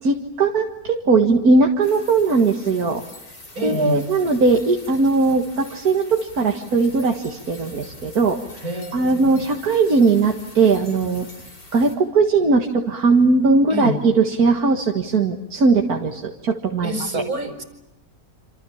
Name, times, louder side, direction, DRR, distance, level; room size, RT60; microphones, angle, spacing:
voice 1, 0.0-3.0 3.6-8.6 8.9-11.3 11.7-17.2, right 4 dB, 90° right, 2 dB, 2.3 m, -19 dB
sound 1, 1.8-11.9, left 2 dB, 80° left, 6.0 m, -44 dB
voice 2, 3.6-4.0 8.6-9.3 13.7-14.0 16.8-17.6, left 1 dB, 75° right, 6 dB, 5.2 m, -27 dB
28.0 x 27.5 x 7.2 m, 0.91 s
omnidirectional pair, 1.6 m